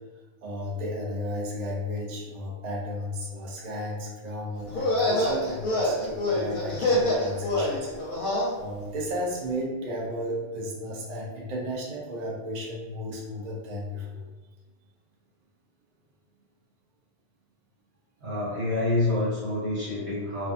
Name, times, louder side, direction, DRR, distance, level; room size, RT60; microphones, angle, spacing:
voice 1, 0.4-7.9 8.6-14.2, equal, 50° right, -3 dB, 0.6 m, -34 dB
sound 1, 4.7-8.5, left 1 dB, 55° left, 0.7 m, -26 dB
voice 2, 18.2-20.5, left 2 dB, 80° right, -11 dB, 1.4 m, -27 dB
2.5 x 2.3 x 2.4 m, 1.2 s
omnidirectional pair, 1.1 m